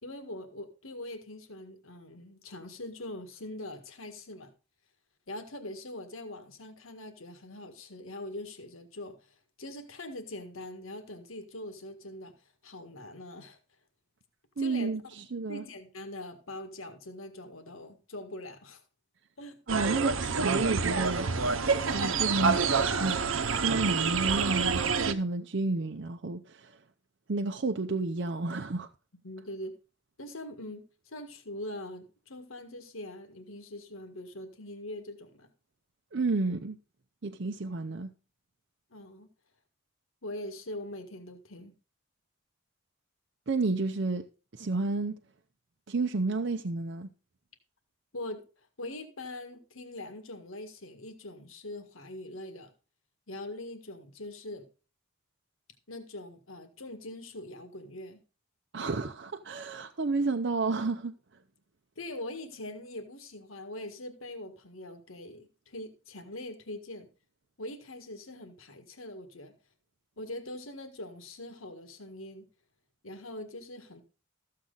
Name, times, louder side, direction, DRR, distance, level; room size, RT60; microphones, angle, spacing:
voice 1, 0.0-4.5 5.3-12.3 12.6-13.6 14.6-14.9 15.5-18.8 19.4-19.6 29.2-29.7 30.2-35.5 38.9-39.3 40.2-41.7 48.1-48.4 48.8-52.7 53.3-54.7 55.9-58.2 62.0-67.1 67.6-69.5 70.2-72.5 73.0-74.0, left 1 dB, 80° left, 1.7 m, -42 dB
voice 2, 14.6-15.6 19.7-21.3 21.9-26.8 27.3-28.9 36.1-36.8 37.2-38.1 43.5-44.3 44.5-45.2 45.9-47.1 58.7-61.1, right 3 dB, 55° right, 0.6 m, -31 dB
sound 1, 19.7-25.1, right 5 dB, 80° right, 0.9 m, -27 dB
14.0 x 7.5 x 3.9 m
head